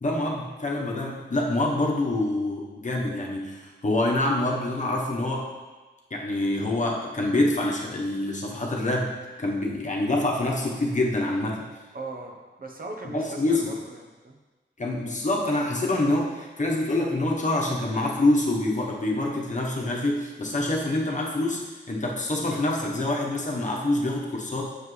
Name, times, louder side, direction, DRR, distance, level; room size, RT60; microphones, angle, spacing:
voice 1, 0.0-5.5 6.1-9.1 9.4-11.7 13.1-13.7 14.8-21.6 21.9-24.6, left 2 dB, 40° left, -1 dB, 1.1 m, -26 dB
voice 2, 11.9-14.4, right 2 dB, 50° right, 1 dB, 0.9 m, -39 dB
7.3 x 6.6 x 3.3 m, 1.2 s
wide cardioid pair, 120°, 19 cm